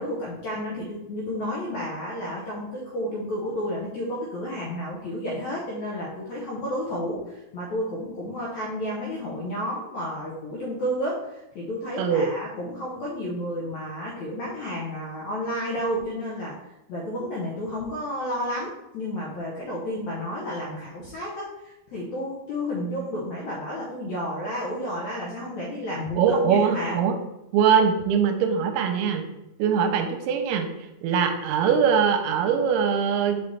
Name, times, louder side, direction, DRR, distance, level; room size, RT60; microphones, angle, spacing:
voice 1, 0.0-16.5 16.9-21.5 21.9-27.0, equal, 70° left, -4 dB, 1.7 m, -31 dB
voice 2, 12.0-12.3 26.2-27.2 27.5-29.2 29.6-30.7 31.0-33.4, right 7 dB, 85° right, 6 dB, 2.7 m, -22 dB
6.0 x 5.4 x 3.3 m, 0.90 s
omnidirectional pair, 4.6 m